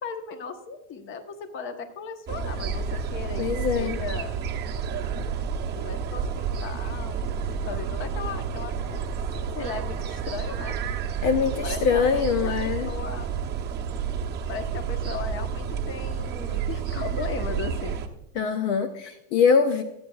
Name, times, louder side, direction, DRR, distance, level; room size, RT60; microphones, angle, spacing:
voice 1, 0.0-3.4 3.7-4.4 5.4-5.5 5.7-9.0 9.4-10.8 11.6-13.4 14.5-18.1, left 5 dB, 25° left, 8 dB, 1.1 m, -37 dB
sound 1, 2.3-18.1, right 6 dB, 20° right, 0.9 m, -30 dB
voice 2, 3.4-4.0 11.2-12.9 18.3-19.8, left 6 dB, 50° left, 8 dB, 0.8 m, -23 dB
24.5 x 8.7 x 2.4 m, 0.85 s
supercardioid pair, 140°, 49 cm